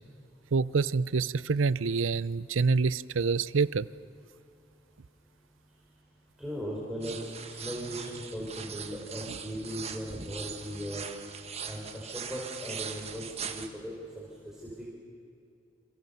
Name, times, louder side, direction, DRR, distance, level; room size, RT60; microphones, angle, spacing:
voice 1, 0.5-3.9, right 4 dB, 85° right, 18 dB, 0.6 m, -26 dB
voice 2, 6.4-11.0 11.6-14.5, equal, 5° right, -5 dB, 4.3 m, -38 dB
sound 1, 7.0-13.7, right 7 dB, 30° right, 1.4 m, -41 dB
28.0 x 28.0 x 6.9 m, 2.5 s
head